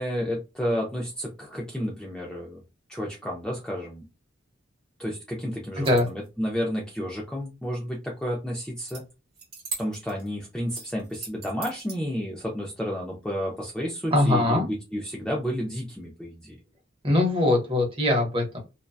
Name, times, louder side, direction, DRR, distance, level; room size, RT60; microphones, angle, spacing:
voice 1, 0.0-2.6 2.9-4.0 5.0-9.0 9.8-16.6, equal, 5° left, -2 dB, 0.4 m, -31 dB
sound 1, 5.6-6.3 8.9-9.0 9.3-10.3 10.7-12.0, right 5 dB, 50° right, 1.0 m, -39 dB
voice 2, 5.8-6.1 14.1-14.7 17.0-18.6, left 1 dB, 25° right, 2 dB, 0.7 m, -22 dB
2.5 x 2.1 x 2.3 m, 0.27 s
head